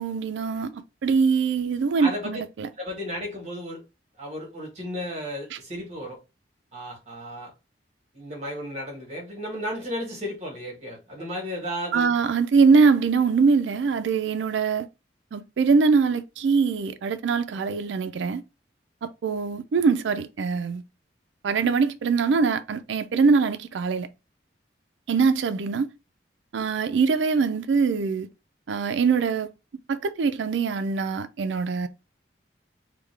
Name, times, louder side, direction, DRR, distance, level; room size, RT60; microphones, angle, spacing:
voice 1, 0.0-2.7 11.9-14.9 15.3-18.4 19.0-20.8 21.4-24.1 25.1-25.9 26.5-28.3 28.7-29.5 29.9-31.9, right 5 dB, 85° right, 0.4 m, -23 dB
voice 2, 2.0-2.4 2.8-3.8 4.2-6.2 6.7-7.5 8.1-12.1, equal, 40° right, 1.3 m, -34 dB
3.6 x 2.2 x 3.3 m
head